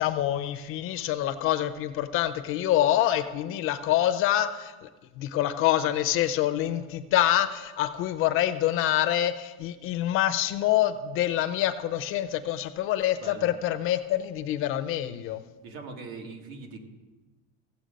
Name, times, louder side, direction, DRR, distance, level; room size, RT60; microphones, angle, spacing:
voice 1, 0.0-4.9 5.2-15.4, left 12 dB, 35° left, 11 dB, 0.4 m, -26 dB
voice 2, 13.2-13.5 15.6-16.8, right 4 dB, 90° right, 3 dB, 2.0 m, -41 dB
15.5 x 7.0 x 5.1 m, 1.2 s
cardioid pair, 170°, 40 cm